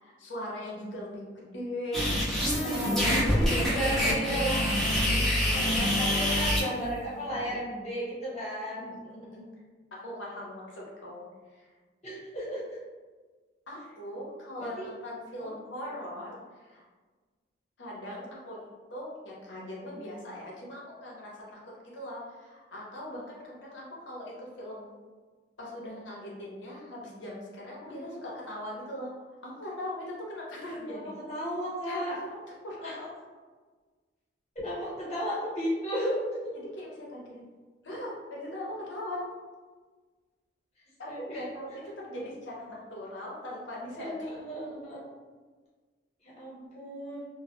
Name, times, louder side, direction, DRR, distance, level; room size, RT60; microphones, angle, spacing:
voice 1, 0.0-2.0 2.9-4.5 5.0-5.6 7.3-7.4 8.8-9.5 9.9-11.2 11.5-11.7 13.7-16.8 17.8-18.6 18.9-24.9 25.6-29.1 29.4-31.1 31.9-33.1 36.5-37.4 37.8-39.2 41.0-44.3, left 1 dB, 75° left, -4 dB, 0.7 m, -40 dB
sound 1, 1.9-6.6, equal, ahead, 0.5 m, -26 dB
voice 2, 2.6-4.7 5.5-9.0 12.0-12.6 14.6-14.9 15.4-15.5 27.9-28.0 30.9-32.2 32.8-32.9 34.5-36.3 41.1-41.4 44.0-45.0 46.4-47.2, equal, 35° left, -7 dB, 0.9 m, -34 dB
2.1 x 2.1 x 2.8 m, 1.4 s
head